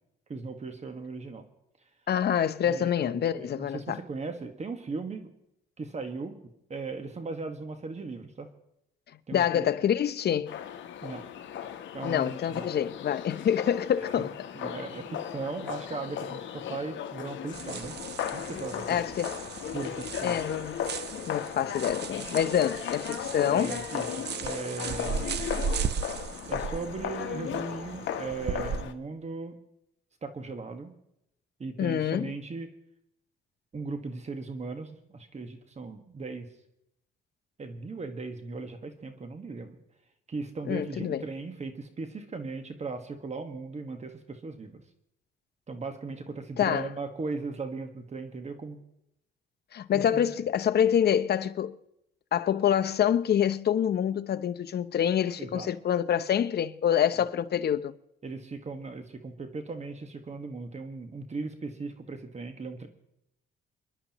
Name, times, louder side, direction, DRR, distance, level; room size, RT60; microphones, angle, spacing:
voice 1, 0.3-1.4 2.6-5.3 5.8-8.5 9.3-9.7 11.0-11.3 11.9-12.7 14.5-17.9 18.3-19.0 19.7-20.3 23.4-25.4 26.5-29.5 30.2-30.9 31.6-32.7 33.7-36.5 37.6-39.8 40.3-44.8 45.7-48.8 49.9-50.2 55.4-55.7 58.2-62.9, right 3 dB, 35° right, 1.6 m, -38 dB
voice 2, 2.1-4.0 9.3-10.6 12.0-14.3 18.9-19.4 20.2-20.8 21.3-23.7 31.8-32.3 40.7-41.2 46.6-46.9 49.7-51.8 52.3-57.9, left 9 dB, 55° left, 0.8 m, -26 dB
sound 1, 10.5-28.9, left 9 dB, 70° left, 1.1 m, -36 dB
sound 2, 17.5-28.8, right 6 dB, 60° right, 0.8 m, -37 dB
30.0 x 11.0 x 3.1 m
cardioid pair, 90°, 20 cm